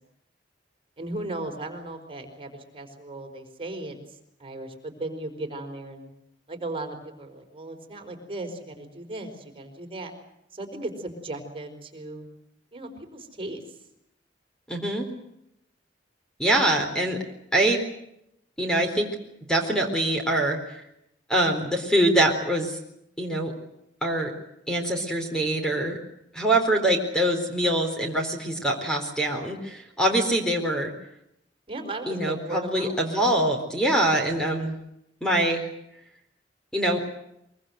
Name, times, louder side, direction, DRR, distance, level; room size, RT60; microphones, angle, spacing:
voice 1, 1.0-6.1 6.5-10.1 10.5-12.3 12.7-13.6 31.7-33.0, right 2 dB, 30° right, 4 dB, 4.9 m, -36 dB
voice 2, 14.7-15.1 16.4-17.2 17.5-17.9 18.6-19.1 19.5-20.8 21.3-22.8 23.2-23.5 24.0-24.3 24.7-26.0 26.3-30.9 32.1-34.8 35.2-35.6 36.7-37.0, right 1 dB, 5° left, 3 dB, 4.0 m, -24 dB
24.0 x 24.0 x 8.0 m, 0.79 s
head